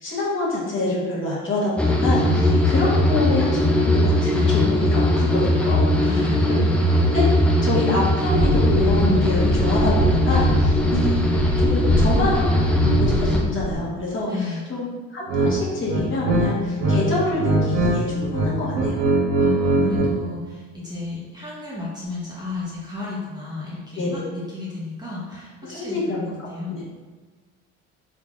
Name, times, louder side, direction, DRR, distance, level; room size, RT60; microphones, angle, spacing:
voice 1, 0.0-6.6 7.0-7.3 7.6-11.2 11.6-19.0 24.0-24.2 25.6-26.8, left 2 dB, 35° left, -6 dB, 1.3 m, -27 dB
sound 1, 1.8-13.4, left 1 dB, 5° left, 0.4 m, -19 dB
voice 2, 2.4-2.8 6.0-6.8 14.3-14.6 19.4-26.7, left 3 dB, 10° right, -8 dB, 1.0 m, -32 dB
sound 2, 8.3-13.8, left 1 dB, 55° left, 0.7 m, -25 dB
sound 3, 15.3-15.5 15.9-17.0 17.3-17.9 18.2-20.1, right 2 dB, 75° right, 1.1 m, -21 dB
3.8 x 3.4 x 2.4 m, 1.4 s
cardioid pair, 110°, 33 cm